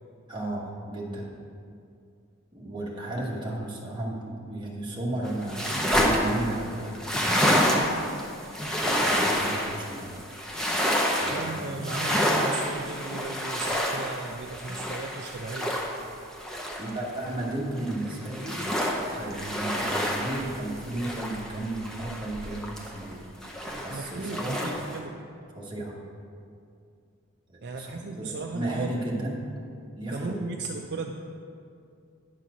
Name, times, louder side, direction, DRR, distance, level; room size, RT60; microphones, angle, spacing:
voice 1, 0.3-1.3 2.5-7.0 8.6-10.2 11.0-11.7 16.8-18.7 19.0-23.3 23.8-24.8 25.5-25.9 27.5-29.4 30.0-30.4, right 1 dB, 20° right, -4 dB, 1.3 m, -34 dB
sound 1, 5.2-17.5 17.8-23.1 23.4-25.0, equal, 5° left, 0.7 m, -28 dB
voice 2, 11.3-15.7 23.7-25.1 27.6-29.3 30.1-31.1, right 3 dB, 50° right, 2 dB, 0.4 m, -36 dB
10.0 x 4.2 x 6.1 m, 2.4 s
head